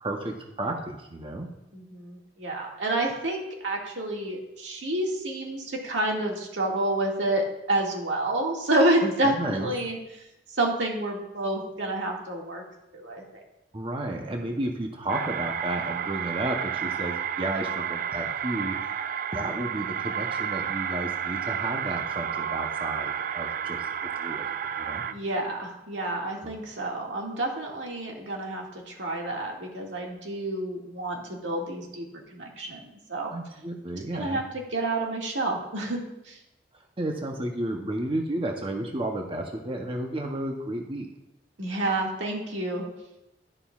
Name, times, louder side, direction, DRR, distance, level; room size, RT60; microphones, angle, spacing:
voice 1, 0.0-1.5 9.0-9.7 13.7-18.9 19.3-25.0 26.4-26.5 33.3-34.4 37.0-41.1, right 1 dB, 30° right, 2 dB, 0.7 m, -32 dB
voice 2, 1.7-10.0 10.6-12.6 12.9-13.2 25.0-32.0 32.3-33.3 34.1-34.4 34.7-36.0 36.3-36.4 41.6-42.8, right 1 dB, 90° right, -1 dB, 2.0 m, -29 dB
sound 1, 15.1-25.1, right 8 dB, 50° right, 0.3 m, -31 dB
11.5 x 11.0 x 2.4 m, 0.90 s
head